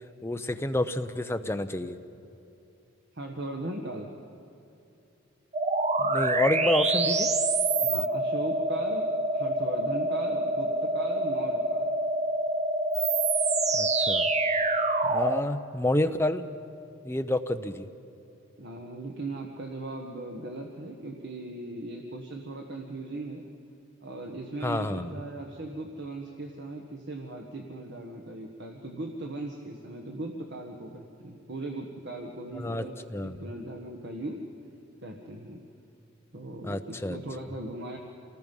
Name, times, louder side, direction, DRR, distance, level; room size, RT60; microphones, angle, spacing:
voice 1, 0.2-2.0 6.0-7.3 13.7-14.3 15.0-16.4 17.0-17.9 24.6-25.1 32.5-32.9 33.1-33.4 36.6-37.2, left 1 dB, 10° left, 8 dB, 0.7 m, -29 dB
voice 2, 3.1-4.1 7.8-9.1 9.3-11.9 18.6-23.4 24.0-34.4 35.0-35.6 36.3-38.0, right 2 dB, 55° right, 2 dB, 1.5 m, -38 dB
sound 1, 5.5-15.4, right 2 dB, 35° right, 0.8 m, -26 dB
28.0 x 19.0 x 5.5 m, 2.7 s
head